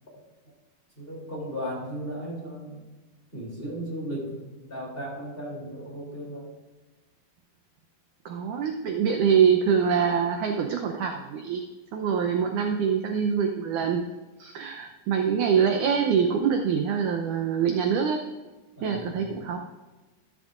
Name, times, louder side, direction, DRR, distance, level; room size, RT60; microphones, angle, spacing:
voice 1, 1.0-2.9 3.3-6.5 18.8-19.6, equal, 15° left, -5 dB, 2.8 m, -36 dB
voice 2, 8.3-11.6 11.9-14.0 14.4-18.2 18.8-19.6, right 7 dB, 75° right, 3 dB, 1.9 m, -24 dB
13.5 x 13.5 x 2.5 m, 1.2 s
omnidirectional pair, 4.4 m